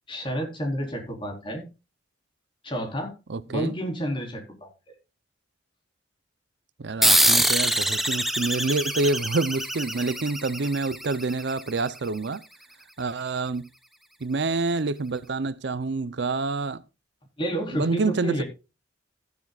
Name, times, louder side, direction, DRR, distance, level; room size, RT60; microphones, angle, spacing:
voice 1, 0.1-1.7 2.6-3.1 3.4-4.7 17.4-18.4, equal, 25° left, 4.0 m, -30 dB
voice 2, 3.3-3.7 6.8-12.4 13.0-13.7 14.2-16.8 17.7-18.4, right 3 dB, 60° right, 0.6 m, -27 dB
sound 1, 7.0-12.0, right 1 dB, ahead, 1.0 m, -24 dB
14.5 x 10.5 x 2.4 m
head